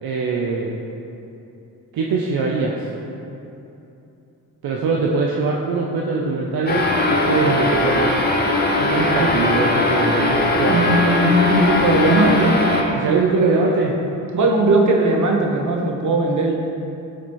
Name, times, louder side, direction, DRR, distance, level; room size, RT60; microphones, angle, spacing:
voice 1, 0.0-0.8 1.9-2.8 4.6-8.2 8.8-10.8 13.0-13.9, right 4 dB, 75° right, -2 dB, 0.7 m, -22 dB
sound 1, 6.7-12.8, left 2 dB, 25° left, 1.1 m, -19 dB
voice 2, 10.6-12.6 13.1-13.7 14.3-16.5, right 2 dB, 55° right, 0 dB, 1.2 m, -19 dB
12.5 x 4.2 x 3.1 m, 2.8 s
cardioid pair, 65°, 36 cm